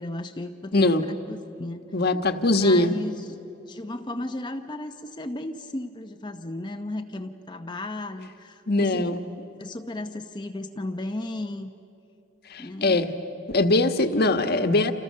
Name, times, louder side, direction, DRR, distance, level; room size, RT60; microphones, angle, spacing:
voice 1, 0.0-1.8 2.5-3.4 3.7-9.1 9.6-11.7 12.6-13.0, left 1 dB, 25° left, 5 dB, 0.8 m, -35 dB
voice 2, 0.7-1.0 1.9-2.9 8.7-9.2 12.5-13.1 13.5-14.9, left 2 dB, 55° left, 7 dB, 1.4 m, -21 dB
29.0 x 28.5 x 6.6 m, 2.8 s
head